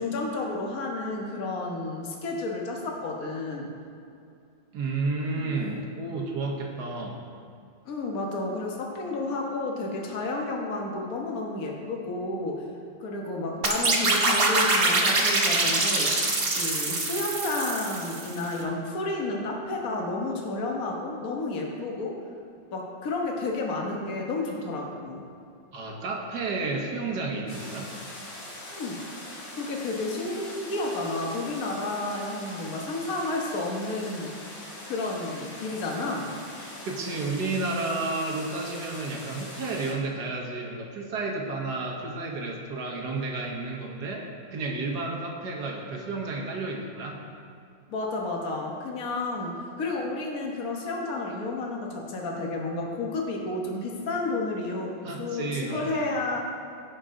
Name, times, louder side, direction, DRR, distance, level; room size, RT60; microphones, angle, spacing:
voice 1, 0.0-3.7 5.4-5.8 7.8-12.6 13.0-16.3 16.6-22.2 22.7-25.2 28.7-29.0 29.6-34.3 34.9-36.3 47.9-56.4, left 2 dB, 50° left, 0 dB, 1.6 m, -31 dB
voice 2, 4.7-7.2 25.7-27.9 36.8-47.2 55.0-56.1, right 3 dB, 65° right, 0 dB, 1.7 m, -31 dB
sound 1, 13.6-18.4, right 2 dB, 40° right, 1.0 m, -24 dB
sound 2, 27.5-39.9, left 1 dB, 75° left, 2.5 m, -42 dB
16.0 x 5.5 x 3.8 m, 2.5 s
omnidirectional pair, 2.0 m